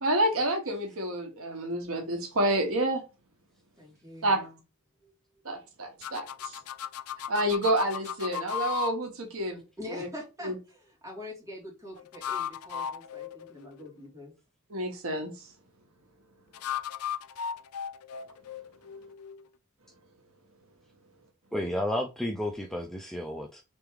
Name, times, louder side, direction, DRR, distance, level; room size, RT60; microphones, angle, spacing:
voice 1, 0.0-3.0 4.2-4.5 5.4-6.2 7.3-9.6 9.9-10.1 10.4-10.5 14.7-15.3, right 1 dB, 65° right, 1.0 m, -28 dB
voice 2, 3.8-4.4 5.0-5.1 9.8-14.3, left 1 dB, 15° right, 2.1 m, -44 dB
sound 1, 6.0-8.9 12.0-14.1 16.5-19.4, left 9 dB, 80° left, 0.4 m, -36 dB
voice 3, 21.5-23.6, left 1 dB, ahead, 0.3 m, -32 dB
3.5 x 3.4 x 3.1 m
head